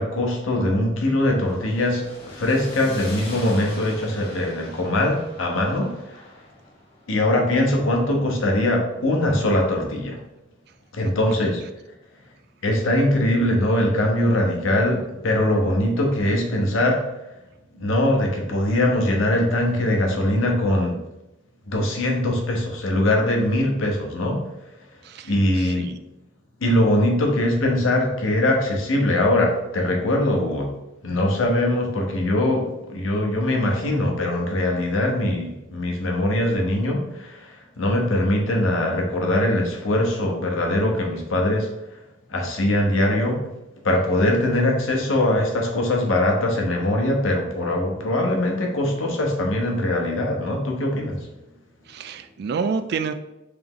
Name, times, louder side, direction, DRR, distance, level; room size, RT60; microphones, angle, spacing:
voice 1, 0.0-5.9 7.1-10.2 10.9-11.6 12.6-17.0 17.7-21.0 21.7-24.4 25.3-25.9 26.6-30.7 31.0-41.7 42.3-43.5 43.8-51.3, left 1 dB, 90° left, 1 dB, 0.8 m, -22 dB
sound 1, 1.2-9.4, left 1 dB, 30° left, 1.2 m, -41 dB
voice 2, 25.0-26.0 51.9-53.1, right 5 dB, 55° right, 9 dB, 0.3 m, -29 dB
3.4 x 3.0 x 3.6 m, 0.95 s
head